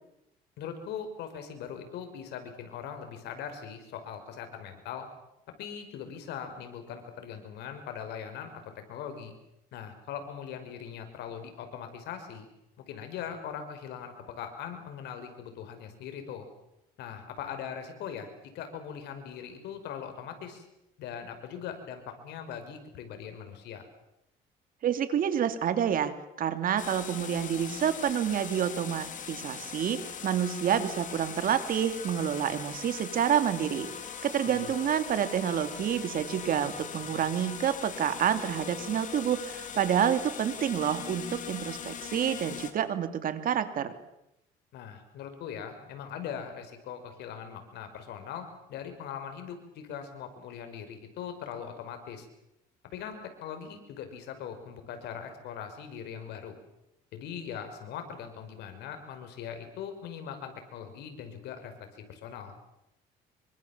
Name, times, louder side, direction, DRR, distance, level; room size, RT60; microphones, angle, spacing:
voice 1, 0.6-5.1 5.6-8.5 8.9-9.3 9.7-12.5 12.8-16.5 17.0-18.3 18.5-20.6 21.0-23.8 34.5-34.7 44.7-52.3 52.9-56.5 57.1-62.5, left 8 dB, 80° left, 7 dB, 5.5 m, -41 dB
voice 2, 24.8-26.1 26.4-33.9 34.2-43.9, right 9 dB, 55° right, 10 dB, 2.8 m, -28 dB
sound 1, 26.8-42.7, left 7 dB, 50° left, 3.5 m, -41 dB
26.5 x 24.5 x 7.4 m, 0.85 s
cardioid pair, 110°, 17 cm